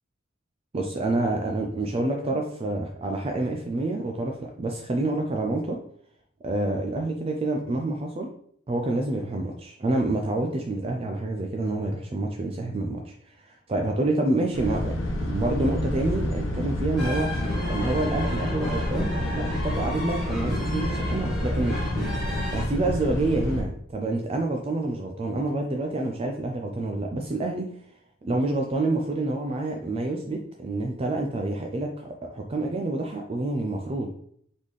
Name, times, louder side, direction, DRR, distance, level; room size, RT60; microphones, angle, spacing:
voice 1, 0.7-5.8 6.4-8.3 8.7-13.1 13.5-14.9 15.2-17.3 17.7-21.8 22.5-27.8 28.2-34.1, right 2 dB, 30° right, 3 dB, 0.4 m, -28 dB
sound 1, 14.5-23.6, left 1 dB, 75° left, 0.9 m, -29 dB
sound 2, 17.0-22.6, left 1 dB, ahead, 1.9 m, -34 dB
4.1 x 3.6 x 3.2 m, 0.65 s
head